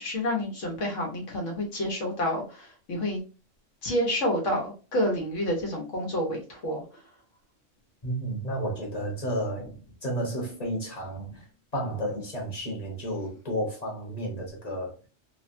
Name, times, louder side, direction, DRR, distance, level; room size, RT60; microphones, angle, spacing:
voice 1, 0.0-3.2 3.8-6.8, left 1 dB, 80° left, 1.3 m, -29 dB
voice 2, 8.0-9.7 10.0-11.4 11.7-14.9, equal, 35° left, 1.1 m, -32 dB
3.4 x 2.2 x 2.6 m
omnidirectional pair, 1.3 m